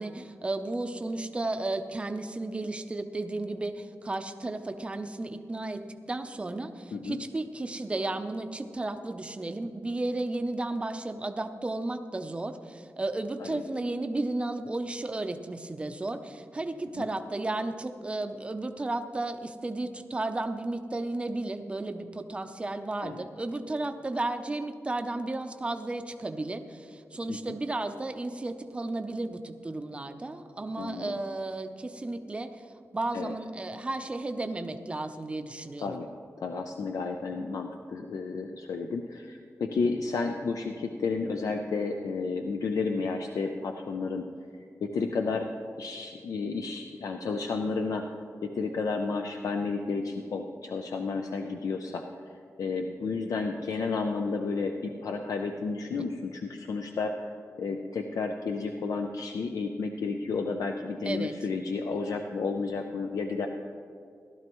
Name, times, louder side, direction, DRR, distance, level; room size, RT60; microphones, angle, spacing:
voice 1, 0.0-32.7 32.9-36.0 61.1-61.3, right 2 dB, 20° right, 8 dB, 0.5 m, -33 dB
voice 2, 6.9-7.2 13.4-13.6 16.9-17.1 23.0-23.2 27.3-27.6 30.8-31.2 33.1-33.3 35.8-36.1 36.4-44.2 44.8-45.5 45.8-48.1 48.4-52.0 52.6-57.3 57.6-63.5, left 4 dB, 80° left, 4 dB, 0.6 m, -32 dB
16.0 x 12.5 x 3.0 m, 2.3 s
wide cardioid pair, 180°, 6 cm